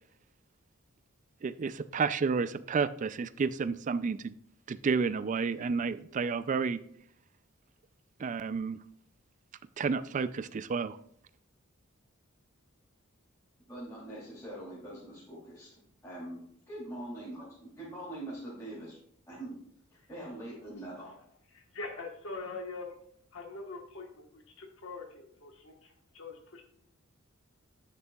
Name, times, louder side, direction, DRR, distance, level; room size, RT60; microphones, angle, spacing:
voice 1, 1.4-4.3 4.7-6.8 8.2-8.8 9.8-11.0, right 5 dB, 35° right, 15 dB, 0.3 m, -31 dB
voice 2, 13.7-16.4 16.7-19.0 19.3-19.5 20.1-21.1, right 1 dB, 15° left, -9 dB, 2.9 m, -43 dB
voice 3, 21.5-22.9 23.3-26.6, left 3 dB, 65° left, 2 dB, 1.3 m, -43 dB
10.5 x 7.1 x 2.3 m, 0.66 s
head